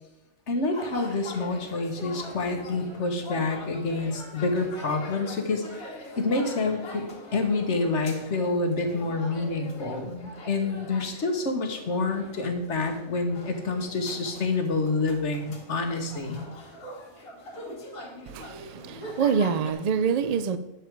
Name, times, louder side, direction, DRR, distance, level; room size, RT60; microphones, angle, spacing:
voice 1, 0.5-16.4, left 3 dB, 55° left, 1.6 m, -28 dB
sound 1, 0.7-19.7, left 1 dB, 75° left, 2.2 m, -43 dB
voice 2, 18.3-20.6, right 6 dB, 85° right, 0.3 m, -26 dB
9.7 x 7.3 x 4.7 m
omnidirectional pair, 1.4 m